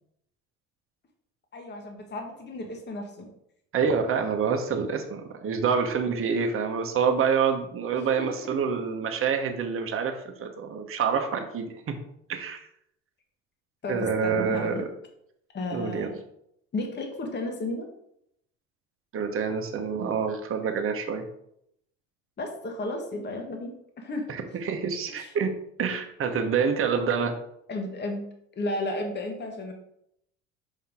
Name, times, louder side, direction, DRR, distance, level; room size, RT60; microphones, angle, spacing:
voice 1, 1.5-3.3 8.0-8.3 8.6-8.7 13.8-14.9 15.5-16.1 16.7-17.9 22.4-24.3 25.2-25.3 27.7-28.3 28.5-29.7, left 2 dB, 25° left, 3 dB, 1.4 m, -33 dB
voice 2, 3.7-12.0 12.3-12.7 13.9-14.8 15.7-16.1 19.1-21.2 24.3-25.5 25.8-27.3, right 6 dB, 35° right, 4 dB, 1.1 m, -27 dB
5.5 x 5.4 x 3.7 m, 0.75 s
hypercardioid pair, 65°, 39 cm